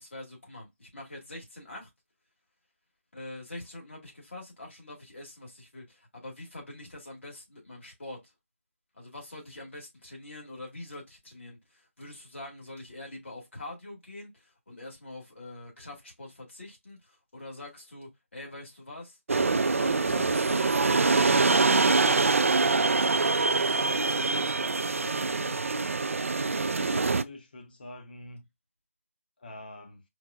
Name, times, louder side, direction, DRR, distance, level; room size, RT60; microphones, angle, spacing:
voice 1, 0.0-1.9 3.1-8.3 8.9-19.2 19.7-22.1 22.9-23.9 24.2-25.8, left 2 dB, 60° left, 1.9 m, -44 dB
sound 1, 19.3-27.2, right 3 dB, 70° right, 0.3 m, -24 dB
voice 2, 27.1-28.5 29.4-30.0, left 1 dB, 45° left, 0.9 m, -46 dB
4.6 x 2.3 x 2.5 m
figure-of-eight pair, 165°, 7 cm